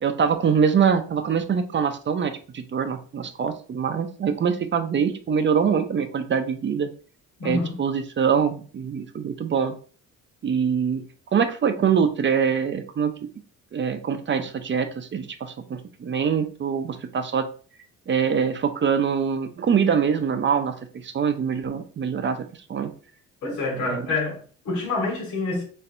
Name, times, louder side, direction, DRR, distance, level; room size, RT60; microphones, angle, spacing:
voice 1, 0.0-6.9 7.4-9.7 10.4-11.0 11.3-13.1 13.7-17.5 18.1-20.8 21.0-22.4 22.7-22.9 23.8-24.0, right 6 dB, 40° right, 0.6 m, -24 dB
voice 2, 7.4-7.8 23.4-25.6, left 3 dB, 85° left, 1.7 m, -27 dB
4.3 x 3.2 x 2.5 m
cardioid pair, 90°, 30 cm